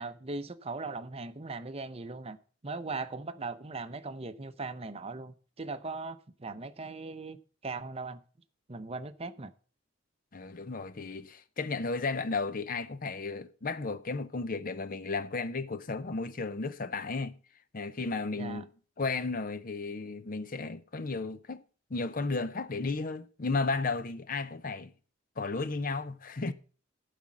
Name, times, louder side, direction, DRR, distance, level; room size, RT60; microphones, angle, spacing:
voice 1, 0.0-2.4 2.6-7.4 7.6-8.2 8.7-9.5 18.4-18.6, right 3 dB, 30° right, 0.7 m, -39 dB
voice 2, 10.3-17.4 17.7-18.7 19.0-21.6 21.9-24.9 25.4-26.5, left 3 dB, 45° left, 0.7 m, -34 dB
11.5 x 5.1 x 7.2 m
head